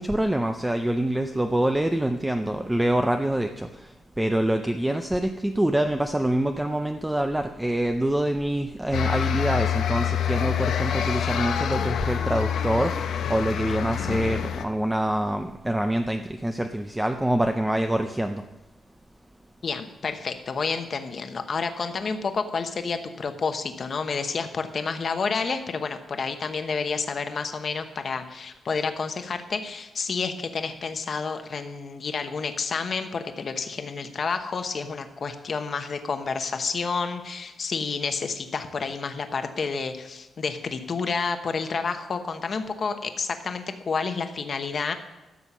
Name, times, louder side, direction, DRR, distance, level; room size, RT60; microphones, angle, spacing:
voice 1, 0.0-18.4, right 1 dB, 5° right, 6 dB, 0.4 m, -25 dB
sound 1, 8.9-14.7, left 9 dB, 80° left, 0.8 m, -26 dB
voice 2, 19.6-44.9, left 5 dB, 40° left, 7 dB, 1.0 m, -30 dB
12.5 x 7.2 x 6.0 m, 1.0 s
wide cardioid pair, 160°, 0 cm